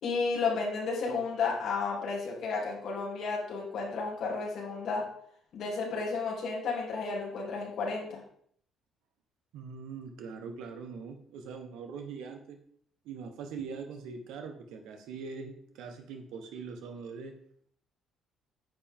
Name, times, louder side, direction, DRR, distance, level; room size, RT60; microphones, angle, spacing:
voice 1, 0.0-5.0 5.5-8.2, left 4 dB, 50° left, -3 dB, 3.3 m, -32 dB
voice 2, 9.5-12.6 13.0-17.3, right 5 dB, 80° right, 5 dB, 1.4 m, -42 dB
9.5 x 7.7 x 3.8 m, 0.65 s
cardioid pair, 165°, 0 cm